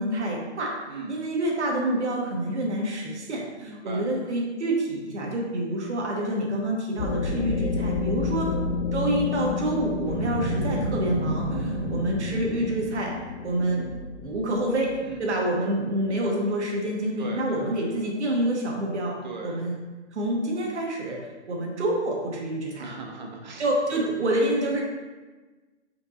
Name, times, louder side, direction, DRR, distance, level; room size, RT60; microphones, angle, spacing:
voice 1, 0.0-0.7 1.1-8.5 8.9-13.1 13.4-13.9 14.2-14.9 15.2-19.2 19.4-19.7 20.1-21.2 21.5-22.8 23.6-24.8, right 1 dB, 75° right, -1 dB, 1.2 m, -27 dB
voice 2, 0.9-1.2 3.6-4.1 8.2-8.4 11.5-11.8 15.0-15.2 17.2-17.6 19.2-19.6 22.8-23.6 23.9-24.1, right 4 dB, 40° right, 1 dB, 0.6 m, -38 dB
sound 1, 7.0-17.2, left 4 dB, 75° left, 0.5 m, -31 dB
Boom, 10.1-13.1, right 1 dB, 40° left, 1.4 m, -31 dB
4.5 x 3.7 x 2.7 m, 1.3 s
hypercardioid pair, 170°, 35 cm